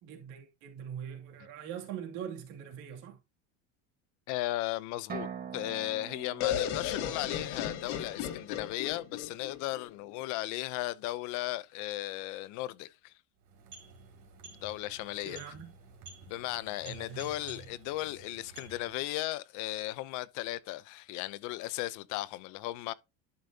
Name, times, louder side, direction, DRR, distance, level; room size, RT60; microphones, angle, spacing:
voice 1, 0.0-3.2 15.2-15.7 16.7-17.7, right 8 dB, 70° right, 2.6 m, -43 dB
voice 2, 4.3-13.1 14.6-15.4 16.3-22.9, left 17 dB, 55° left, 0.7 m, -36 dB
sound 1, 5.1-8.8, right 7 dB, 25° right, 1.4 m, -45 dB
sound 2, 6.4-10.2, left 10 dB, 80° left, 2.0 m, -35 dB
sound 3, 13.4-19.2, right 3 dB, 55° right, 3.3 m, -52 dB
11.5 x 5.3 x 2.8 m
cardioid pair, 160°, 36 cm